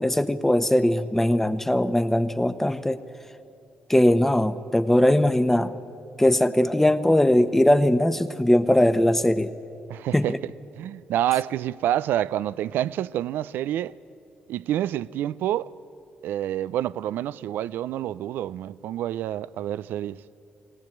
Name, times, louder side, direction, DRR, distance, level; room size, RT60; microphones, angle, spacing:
voice 1, 0.0-3.0 3.9-5.7 6.2-9.5 10.1-10.4, left 1 dB, 10° left, 1.1 m, -20 dB
voice 2, 9.9-10.3 10.8-13.9 14.5-15.7 16.2-20.2, right 12 dB, 80° right, 0.4 m, -28 dB
21.0 x 17.5 x 9.1 m
supercardioid pair, 60°, 3 cm